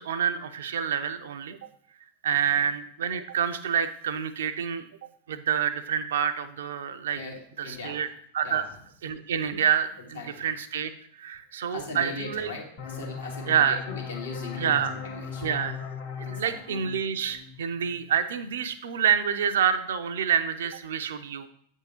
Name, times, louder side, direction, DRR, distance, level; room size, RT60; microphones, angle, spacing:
voice 1, 0.0-1.6 2.2-4.9 5.3-7.2 7.6-8.1 8.3-8.7 9.0-10.9 11.2-12.5 13.5-13.8 14.6-14.9 15.4-15.9 16.2-21.5, right 8 dB, 60° right, 10 dB, 0.5 m, -27 dB
voice 2, 7.1-8.0 8.4-8.7 10.1-10.5 11.7-15.5 16.2-16.6, left 3 dB, 70° left, -2 dB, 1.7 m, -39 dB
sound 1, 12.8-18.2, left 6 dB, 45° left, 1.3 m, -38 dB
8.2 x 3.6 x 4.3 m, 0.65 s
figure-of-eight pair, 90°, 0 cm